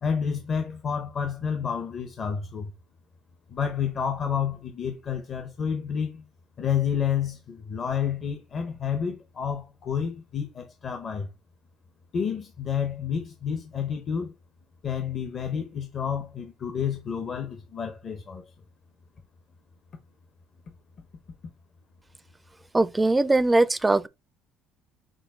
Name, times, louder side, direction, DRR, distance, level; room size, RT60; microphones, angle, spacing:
voice 1, 0.0-2.7 3.5-6.2 6.6-11.3 12.1-14.3 14.8-18.5, left 7 dB, 45° left, 0.8 m, -29 dB
voice 2, 22.7-24.1, right 2 dB, 15° right, 0.4 m, -21 dB
6.3 x 2.3 x 3.7 m
supercardioid pair, 85°, 0 cm